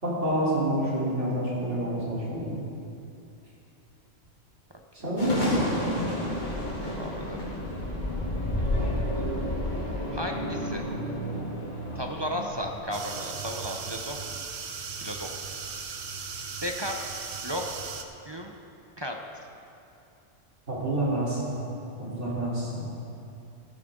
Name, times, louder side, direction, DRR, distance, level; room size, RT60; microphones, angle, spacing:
voice 1, 0.0-2.6 5.0-5.6 20.7-21.6 22.0-22.9, right 1 dB, 70° right, -8 dB, 4.1 m, -28 dB
sound 1, 5.2-12.8, left 1 dB, 40° left, 2.4 m, -30 dB
voice 2, 6.8-7.5 8.6-9.2 10.1-10.8 11.9-14.4 15.0-15.3 16.6-17.2 17.4-17.8 18.3-18.5 19.0-19.5, equal, 25° right, 2 dB, 0.7 m, -35 dB
sound 2, 12.9-18.0, right 5 dB, 55° right, 0.9 m, -37 dB
14.5 x 12.0 x 3.8 m, 2.7 s
omnidirectional pair, 1.3 m